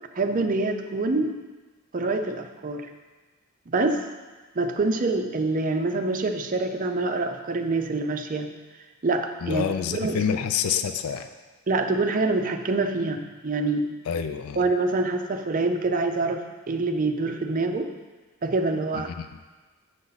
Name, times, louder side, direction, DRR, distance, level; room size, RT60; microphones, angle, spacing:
voice 1, 0.2-1.4 1.9-2.9 3.7-4.1 4.5-8.5 9.0-9.7 9.9-10.2 11.7-13.8 14.6-17.9 18.4-19.1, right 3 dB, 40° right, 5 dB, 0.5 m, -25 dB
voice 2, 9.4-11.3 14.1-14.6 18.9-19.3, left 7 dB, 75° left, 9 dB, 0.4 m, -27 dB
7.0 x 6.4 x 4.0 m, 1.3 s
head